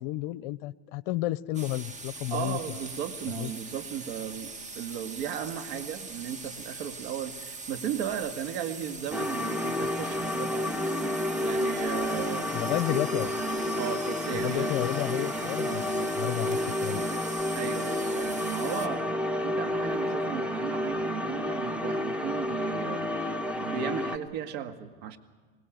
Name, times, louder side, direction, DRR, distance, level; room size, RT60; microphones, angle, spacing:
voice 1, 0.0-2.8 3.4-3.5 12.5-13.3 14.3-17.1, left 16 dB, 55° left, 20 dB, 0.7 m, -32 dB
sound 1, 1.5-18.9, right 3 dB, 20° right, 1.9 m, -42 dB
voice 2, 2.3-10.9 11.4-12.5 13.8-14.7 17.5-25.2, right 9 dB, 60° right, 7 dB, 2.0 m, -36 dB
sound 2, 9.1-24.2, left 1 dB, 5° right, 1.5 m, -30 dB
25.5 x 19.0 x 9.2 m, 1.4 s
hypercardioid pair, 100°, 34 cm